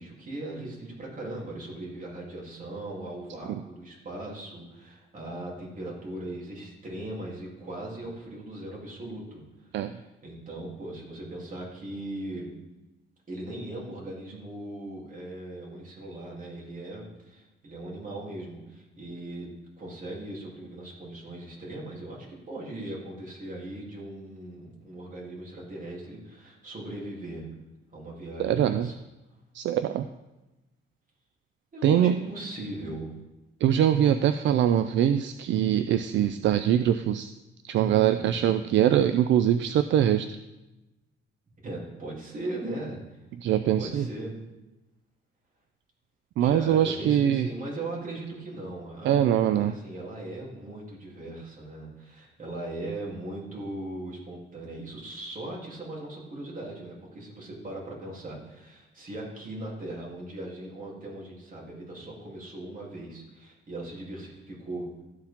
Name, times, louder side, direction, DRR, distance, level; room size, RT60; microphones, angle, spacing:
voice 1, 0.0-9.4 9.9-12.5 13.3-19.5 19.8-27.5 27.9-28.9 31.7-33.1 38.2-38.4 41.6-43.2 43.8-44.4 46.4-64.9, right 1 dB, 40° right, -4 dB, 3.2 m, -39 dB
voice 2, 28.4-28.9 29.5-30.1 31.8-32.1 33.6-37.3 37.6-40.4 43.4-44.1 46.4-47.5 49.0-49.7, right 10 dB, 70° right, 10 dB, 0.4 m, -23 dB
13.0 x 4.6 x 3.6 m, 1.0 s
cardioid pair, 90°, 20 cm